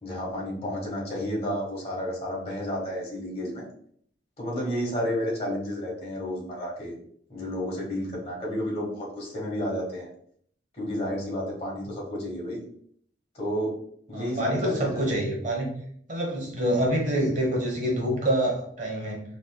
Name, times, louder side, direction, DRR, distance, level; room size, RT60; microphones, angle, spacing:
voice 1, 0.0-3.6 4.4-6.9 7.3-10.1 10.8-12.6 13.3-13.7 14.1-15.1, equal, 35° left, -4 dB, 1.5 m, -31 dB
voice 2, 14.1-15.7 16.1-19.2, right 1 dB, 45° right, -1 dB, 1.1 m, -26 dB
4.1 x 3.3 x 2.3 m, 0.63 s
head